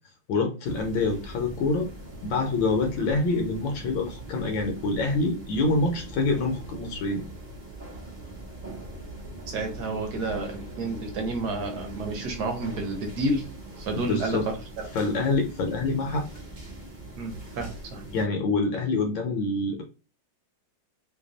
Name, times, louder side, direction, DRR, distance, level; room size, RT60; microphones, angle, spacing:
voice 1, 0.3-1.9 2.2-7.2 13.9-14.5 14.9-16.3 18.1-19.8, left 3 dB, 75° left, 3 dB, 1.3 m, -26 dB
sound 1, 0.6-18.3, right 1 dB, 40° right, 0.6 m, -41 dB
voice 2, 9.4-13.5 13.8-14.4 14.8-14.9 17.2-18.1, right 2 dB, 60° right, 4 dB, 1.2 m, -30 dB
3.3 x 2.2 x 3.8 m, 0.32 s
omnidirectional pair, 2.2 m